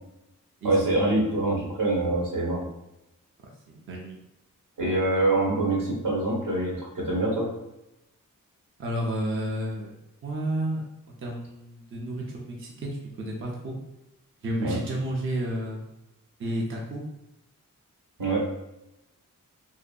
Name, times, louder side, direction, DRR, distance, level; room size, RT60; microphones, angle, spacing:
voice 1, 0.6-2.7 4.8-7.5 14.6-14.8 18.2-18.4, right 2 dB, 75° right, -3 dB, 1.0 m, -25 dB
voice 2, 3.4-4.2 8.8-9.9 10.2-10.8 11.2-13.8 14.4-15.8 16.4-17.0, right 1 dB, 40° right, -2 dB, 0.5 m, -31 dB
2.6 x 2.5 x 2.3 m, 0.91 s
wide cardioid pair, 105°, 33 cm